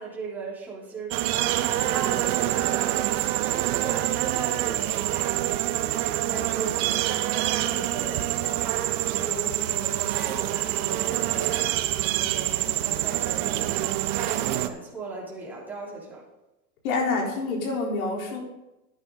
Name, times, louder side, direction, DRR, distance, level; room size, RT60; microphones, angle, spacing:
voice 1, 0.0-16.2, right 3 dB, 5° right, -7 dB, 3.4 m, -38 dB
sound 1, 1.1-14.7, right 14 dB, 60° right, 0.9 m, -26 dB
voice 2, 16.8-18.4, left 3 dB, 80° left, -1 dB, 3.9 m, -27 dB
11.0 x 10.5 x 3.9 m, 0.95 s
supercardioid pair, 125°, 42 cm